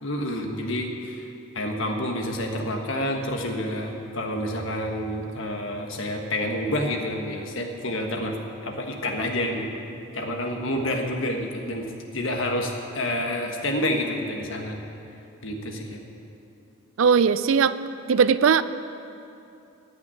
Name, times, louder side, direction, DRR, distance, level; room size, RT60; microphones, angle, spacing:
voice 1, 0.0-1.3 1.5-8.4 8.6-9.8 10.1-11.9 12.1-14.8 15.4-16.0, left 1 dB, 65° left, 3 dB, 1.5 m, -28 dB
voice 2, 17.0-17.8 18.1-18.6, right 6 dB, 70° right, 14 dB, 0.4 m, -19 dB
15.0 x 6.0 x 9.8 m, 2.7 s
head